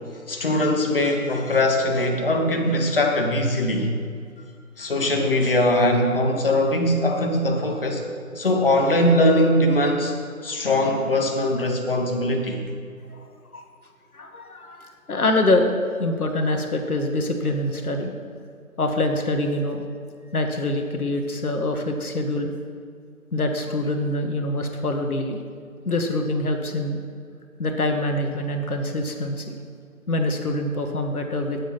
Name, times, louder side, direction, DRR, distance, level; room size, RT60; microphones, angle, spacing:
voice 1, 0.3-3.9 4.8-8.0 8.3-10.2 10.4-12.6, left 1 dB, 40° left, 3 dB, 1.1 m, -21 dB
voice 2, 14.1-15.7 16.0-18.1 18.8-19.8 20.3-22.5 23.3-25.4 25.8-27.0 27.6-29.5 30.1-31.6, left 1 dB, 80° left, 4 dB, 1.4 m, -25 dB
8.9 x 7.3 x 5.7 m, 2.2 s
figure-of-eight pair, 165°, 43 cm